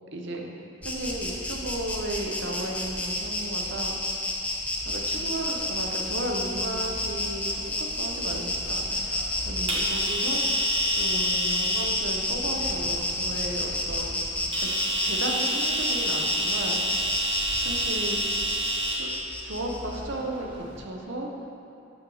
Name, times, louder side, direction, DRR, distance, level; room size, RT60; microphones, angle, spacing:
voice 1, 0.1-0.5 0.8-4.0 4.8-10.7 10.9-14.2 14.6-14.7 15.0-16.8 17.6-18.2 18.9-19.1 19.4-21.3, right 1 dB, 60° right, 1 dB, 0.7 m, -34 dB
Insect, 0.8-20.0, left 1 dB, 5° left, 0.4 m, -30 dB
sound 1, 4.7-20.8, right 1 dB, 25° right, 0.9 m, -32 dB
6.2 x 6.0 x 3.8 m, 2.7 s
head